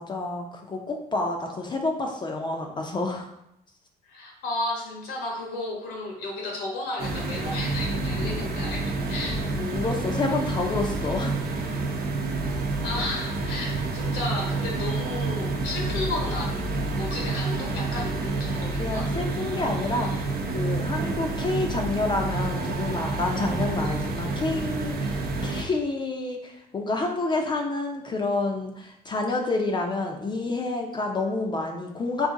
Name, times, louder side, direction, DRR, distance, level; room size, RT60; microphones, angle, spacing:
voice 1, 0.0-3.3 8.2-8.4 9.3-11.8 18.6-32.3, left 3 dB, 25° left, 2 dB, 0.5 m, -29 dB
voice 2, 4.0-9.6 12.8-19.1, left 2 dB, 90° left, -1 dB, 1.4 m, -33 dB
sound 1, 7.0-25.6, right 3 dB, 65° right, 0.8 m, -29 dB
3.9 x 2.7 x 3.7 m, 0.80 s
cardioid pair, 110°, 17 cm